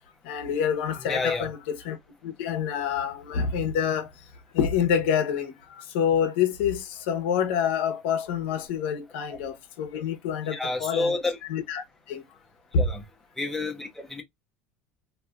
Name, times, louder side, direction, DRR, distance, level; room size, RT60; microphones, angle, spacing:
voice 1, 0.2-2.0 2.2-4.1 4.5-12.2 12.7-12.9, left 7 dB, 85° left, 1.0 m, -27 dB
voice 2, 1.1-1.5 10.5-11.4 12.8-13.0 13.4-14.2, left 3 dB, 5° left, 0.9 m, -29 dB
3.3 x 2.8 x 2.4 m
supercardioid pair, 130°, 6 cm